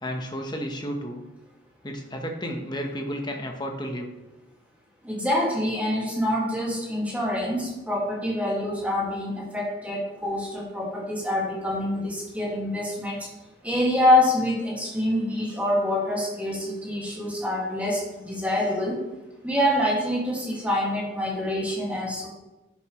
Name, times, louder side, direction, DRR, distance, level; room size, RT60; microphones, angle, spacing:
voice 1, 0.0-1.2 1.8-4.1, equal, 20° left, 3 dB, 1.1 m, -32 dB
voice 2, 5.0-13.3 13.6-19.0 19.4-22.3, left 1 dB, 10° right, -4 dB, 2.1 m, -26 dB
10.5 x 7.4 x 3.2 m, 1.0 s
head